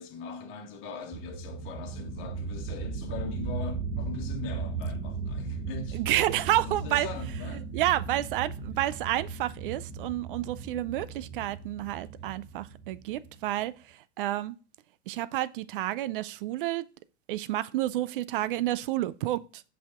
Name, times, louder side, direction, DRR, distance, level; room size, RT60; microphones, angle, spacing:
voice 1, 0.0-6.2 6.6-7.7 8.7-8.8 10.6-10.9 12.1-12.3, left 5 dB, 35° left, 1.5 m, -41 dB
sound 1, 1.1-13.5, right 4 dB, 15° right, 0.9 m, -37 dB
voice 2, 5.9-7.1 7.7-14.6 15.1-16.9 17.3-19.6, right 14 dB, 50° right, 0.4 m, -30 dB
5.5 x 5.2 x 3.6 m
hypercardioid pair, 105°, 34 cm